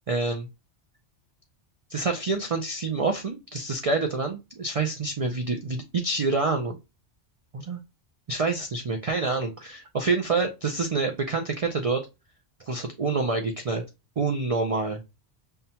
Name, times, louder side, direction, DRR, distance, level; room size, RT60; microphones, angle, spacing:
voice 1, 0.1-0.5 1.9-6.8 7.5-7.8 8.3-12.0 12.6-13.8 14.2-15.0, right 3 dB, 65° right, 5 dB, 0.3 m, -27 dB
5.5 x 2.2 x 2.7 m, 0.26 s
omnidirectional pair, 1.2 m